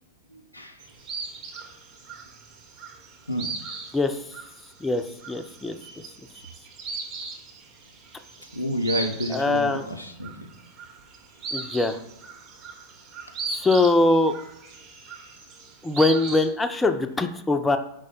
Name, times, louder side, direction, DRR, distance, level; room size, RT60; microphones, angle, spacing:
voice 1, 0.3-0.8 3.3-3.5 8.5-10.5, equal, 85° left, 6 dB, 0.4 m, -30 dB
sound 1, 0.8-16.5, right 4 dB, 35° right, 0.7 m, -38 dB
voice 2, 4.8-5.7 9.3-9.9 11.5-12.0 13.6-14.3 15.8-17.8, left 2 dB, 10° left, 7 dB, 0.3 m, -22 dB
4.6 x 2.1 x 4.2 m, 0.79 s
figure-of-eight pair, 90°, 0 cm